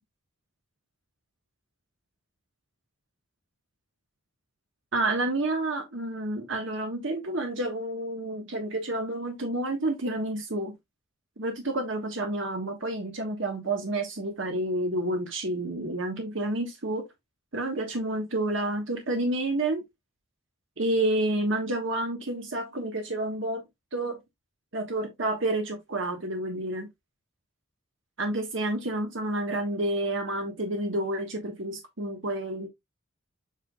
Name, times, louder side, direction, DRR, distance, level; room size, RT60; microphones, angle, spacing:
voice 1, 4.9-10.7 11.4-17.0 17.5-19.8 20.8-23.6 23.9-24.2 24.7-26.9 28.2-32.7, right 1 dB, 60° right, 1.4 m, -29 dB
8.1 x 5.4 x 2.3 m
head